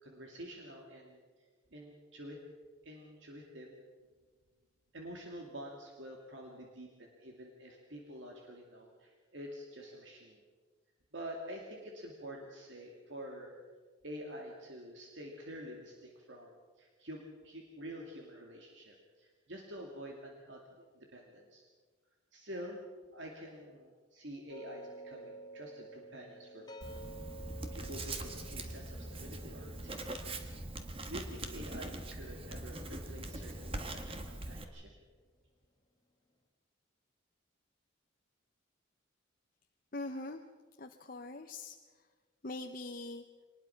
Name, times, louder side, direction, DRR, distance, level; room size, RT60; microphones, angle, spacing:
voice 1, 0.0-1.2 1.7-2.4 2.8-3.8 4.9-10.4 11.1-13.5 14.0-21.6 22.3-22.8 23.1-26.7 27.7-30.0 31.1-34.9, equal, 65° right, 0 dB, 2.5 m, -48 dB
sound 1, 24.5-33.7, right 2 dB, 20° left, 1.8 m, -52 dB
Writing, 26.8-34.6, right 2 dB, 25° right, 1.6 m, -42 dB
voice 2, 39.9-40.5 40.8-42.1 42.4-43.2, left 2 dB, 45° left, 5 dB, 0.8 m, -43 dB
24.5 x 20.0 x 5.9 m, 1.5 s
head